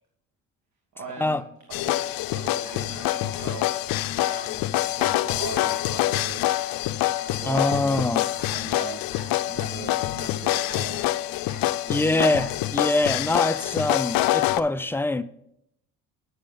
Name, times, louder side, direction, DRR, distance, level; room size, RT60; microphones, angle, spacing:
voice 1, 0.9-1.4 1.8-4.0 4.3-6.5 7.2-11.1 11.7-12.3, right 4 dB, 55° right, 1.8 m, -40 dB
sound 1, 1.7-14.6, left 15 dB, 80° left, 0.5 m, -26 dB
sound 2, 2.6-3.5 4.2-4.4 5.7-6.2 7.0-7.1 7.3-7.7 8.3-8.5 9.1-9.3 9.6-9.7 10.6-11.1 11.5-11.7 12.3-12.6 13.7-14.4, left 1 dB, 10° right, 3.5 m, -45 dB
voice 2, 7.5-8.2 11.9-15.2, left 2 dB, 5° left, 0.4 m, -24 dB
9.2 x 6.5 x 3.9 m
cardioid pair, 85°, 34 cm